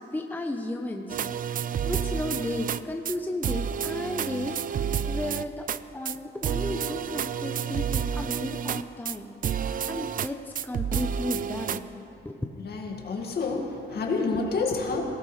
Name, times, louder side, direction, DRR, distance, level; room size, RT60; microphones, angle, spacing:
voice 1, 0.1-5.6 5.9-11.8 12.2-12.5, left 1 dB, 10° left, 3 dB, 0.9 m, -34 dB
sound 1, 1.1-2.8 3.1-3.2 3.4-5.8 6.1-6.2 6.4-9.2 9.4-10.3 10.6-11.8, right 8 dB, 45° right, 0.4 m, -30 dB
voice 2, 12.6-15.0, left 4 dB, 55° left, 1 dB, 2.1 m, -28 dB
19.0 x 17.5 x 3.3 m, 2.7 s
cardioid pair, 90°, 20 cm